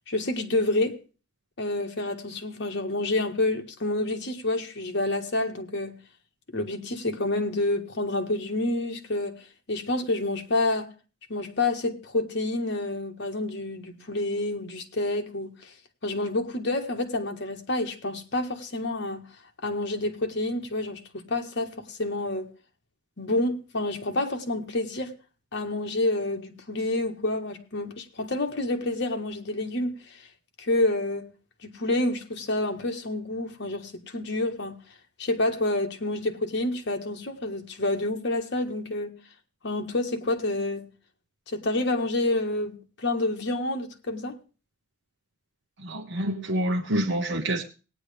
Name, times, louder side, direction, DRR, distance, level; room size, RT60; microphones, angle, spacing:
voice 1, 0.1-1.0 1.6-6.0 6.5-10.9 11.3-15.7 16.0-19.3 19.6-22.5 23.2-25.1 25.5-30.3 30.6-31.3 31.6-34.8 35.2-39.1 39.6-40.9 41.5-44.4, left 2 dB, 60° left, 1.5 m, -28 dB
voice 2, 45.8-47.6, right 1 dB, 60° right, 0.9 m, -27 dB
18.5 x 9.4 x 3.4 m
head